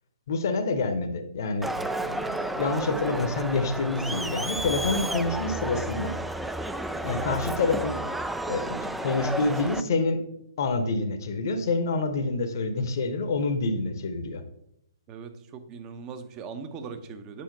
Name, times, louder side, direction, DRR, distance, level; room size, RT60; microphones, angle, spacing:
voice 1, 0.3-6.1 7.0-8.0 8.5-10.2 10.6-14.4, left 3 dB, 50° left, 8 dB, 0.9 m, -27 dB
Crowd, 1.6-9.8, right 1 dB, 5° right, 0.3 m, -31 dB
voice 2, 15.1-17.4, right 5 dB, 25° right, 9 dB, 0.8 m, -40 dB
8.5 x 5.9 x 4.0 m, 0.79 s
figure-of-eight pair, 125°, 2 cm